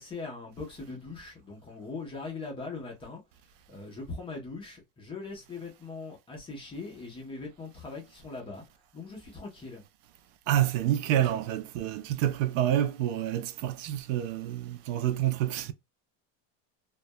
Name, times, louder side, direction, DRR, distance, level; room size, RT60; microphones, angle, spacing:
voice 1, 0.0-3.2 3.7-8.6 8.9-9.8, left 3 dB, 15° left, 0.5 m, -40 dB
voice 2, 10.5-15.7, right 11 dB, 70° right, 0.5 m, -28 dB
2.2 x 2.1 x 2.6 m
cardioid pair, 165°, 40 cm